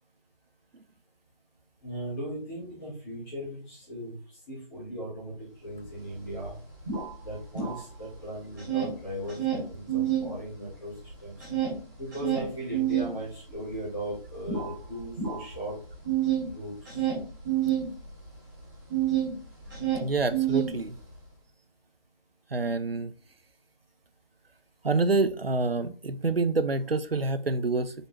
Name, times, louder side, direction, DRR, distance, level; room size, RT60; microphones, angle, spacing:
voice 1, 1.8-4.1 4.5-6.6 7.2-11.3 12.0-15.7 16.5-17.0, equal, 5° left, 1.3 m, -38 dB
sound 1, 5.8-5.9 6.2-8.2 8.5-10.3 10.7-19.3 19.6-21.2, right 10 dB, 20° right, 2.1 m, -29 dB
voice 2, 20.0-21.0 22.5-23.1 24.8-27.9, right 3 dB, 85° right, 0.6 m, -27 dB
6.0 x 5.2 x 3.0 m
figure-of-eight pair, 160°, 29 cm